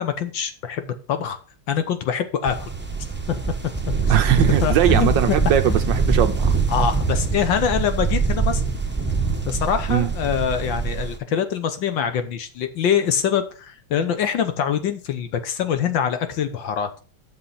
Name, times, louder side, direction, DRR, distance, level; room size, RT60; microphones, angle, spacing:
voice 1, 0.0-1.4 1.7-2.7 4.0-4.2 4.6-5.4 5.6-5.8 6.7-8.6 9.5-16.9, left 8 dB, 65° left, 9 dB, 1.6 m, -24 dB
sound 1, 2.5-11.2, right 4 dB, 10° right, 0.5 m, -23 dB
voice 2, 4.1-6.5 9.9-10.1, right 11 dB, 70° right, 9 dB, 1.2 m, -20 dB
7.7 x 6.7 x 5.6 m, 0.37 s
omnidirectional pair, 2.4 m